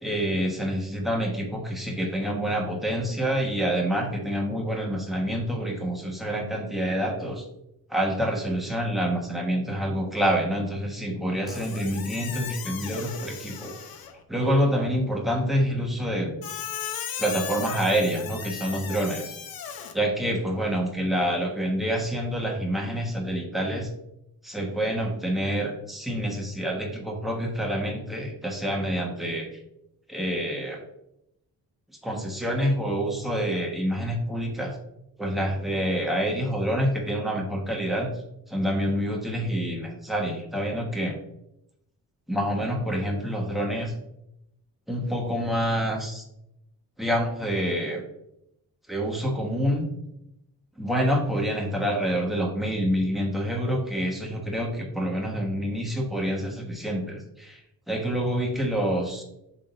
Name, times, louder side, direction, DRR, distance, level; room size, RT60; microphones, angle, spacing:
voice 1, 0.0-7.5 7.9-13.8 14.3-16.3 17.2-19.3 19.9-23.9 24.4-29.5 30.1-30.8 32.0-34.8 35.2-38.1 38.5-41.2 42.3-43.9 44.9-46.2 47.0-48.0 48.9-49.9 50.8-57.6 57.9-59.2, equal, ahead, -1 dB, 1.3 m, -27 dB
Squeak, 11.5-14.2 16.4-19.9, left 8 dB, 70° left, 1.0 m, -36 dB
11.5 x 3.9 x 2.6 m, 0.82 s
cardioid pair, 145°, 37 cm